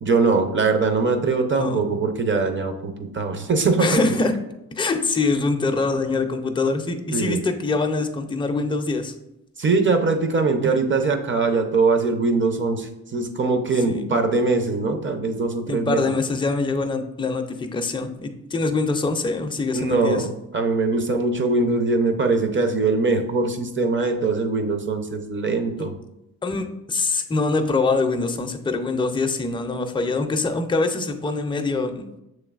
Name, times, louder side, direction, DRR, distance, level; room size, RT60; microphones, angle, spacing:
voice 1, 0.0-4.0 7.1-7.4 9.6-16.0 19.7-26.0, right 3 dB, 30° right, 6 dB, 0.6 m, -22 dB
voice 2, 3.8-4.3 4.8-9.1 13.9-14.1 15.7-20.2 25.8-25.9 26.4-32.2, left 3 dB, 15° left, 6 dB, 0.5 m, -24 dB
6.5 x 3.2 x 2.4 m, 0.87 s
supercardioid pair, 60°, 37 cm